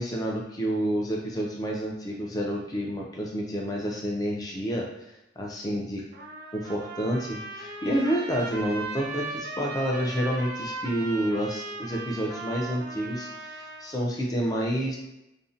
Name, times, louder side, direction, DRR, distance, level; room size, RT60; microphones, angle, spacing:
voice 1, 0.0-4.9 5.4-6.0 6.5-15.0, equal, 20° left, -1 dB, 0.4 m, -29 dB
Trumpet, 6.1-14.0, right 2 dB, 50° right, 0.4 m, -38 dB
2.5 x 2.0 x 2.5 m, 0.88 s
head